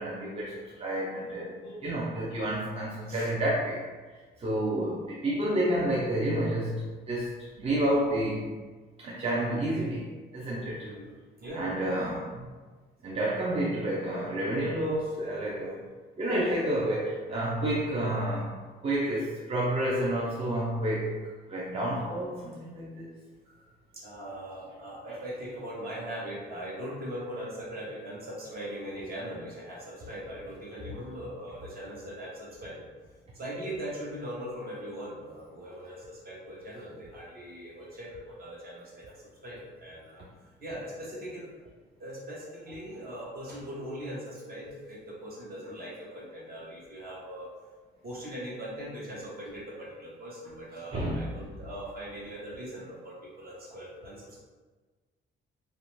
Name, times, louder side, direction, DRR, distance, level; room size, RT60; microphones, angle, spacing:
voice 1, 0.0-3.8 4.4-8.5 9.0-10.9 11.5-12.5 13.0-15.8 16.2-18.5 18.8-21.2 21.5-23.1 50.9-51.3, right 1 dB, 30° right, -5 dB, 0.5 m, -30 dB
voice 2, 10.7-11.1 11.4-11.7 23.6-32.8 33.3-39.1 39.4-40.2 40.6-41.6 42.0-47.5 48.0-54.4, equal, 50° right, -5 dB, 1.0 m, -40 dB
2.4 x 2.1 x 3.0 m, 1.4 s
cardioid pair, 90°, 20 cm